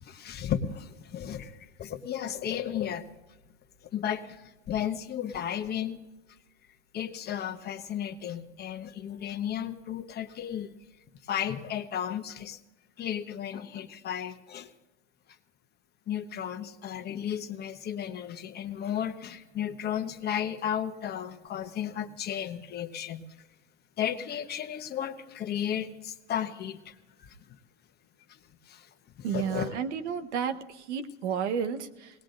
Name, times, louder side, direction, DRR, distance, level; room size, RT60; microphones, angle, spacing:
voice 1, 0.0-3.0 3.9-6.0 6.9-10.7 11.3-12.6 13.0-14.7 16.1-23.2 24.0-27.4 28.7-28.9 29.2-29.7, left 9 dB, 30° left, 8 dB, 1.0 m, -34 dB
voice 2, 29.2-32.1, right 7 dB, 90° right, 9 dB, 1.2 m, -32 dB
20.0 x 19.0 x 2.6 m, 1.1 s
supercardioid pair, 130°, 33 cm